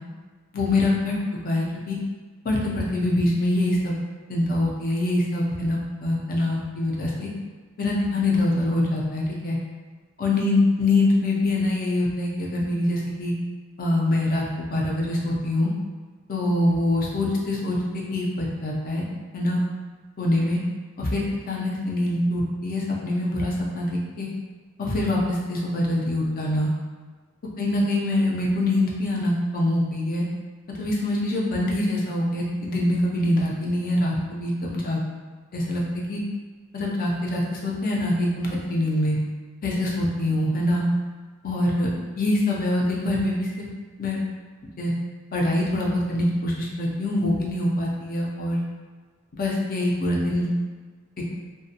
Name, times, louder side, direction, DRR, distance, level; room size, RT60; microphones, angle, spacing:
voice 1, 0.5-1.1 1.4-2.0 2.4-3.9 4.3-7.3 7.8-9.6 10.2-13.3 13.8-15.7 16.3-17.8 18.1-19.1 19.3-19.6 20.2-20.6 21.0-24.3 24.8-26.7 27.6-30.2 30.8-35.0 35.5-36.2 36.7-39.2 39.6-40.8 41.4-41.9 42.2-43.7 44.0-44.2 44.8-44.9 45.3-48.6 49.3-50.5, left 1 dB, 40° left, -3 dB, 0.5 m, -24 dB
2.5 x 2.2 x 2.7 m, 1.4 s
head